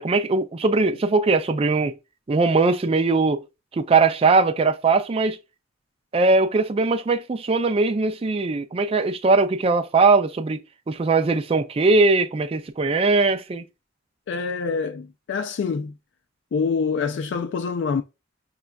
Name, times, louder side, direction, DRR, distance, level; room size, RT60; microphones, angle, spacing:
voice 1, 0.0-2.0 2.3-3.4 3.7-5.4 6.1-10.6 10.9-13.6, right 3 dB, 30° right, 0.4 m, -20 dB
voice 2, 14.3-15.9 16.5-18.0, left 5 dB, 65° left, 0.3 m, -26 dB
6.0 x 2.2 x 2.3 m
head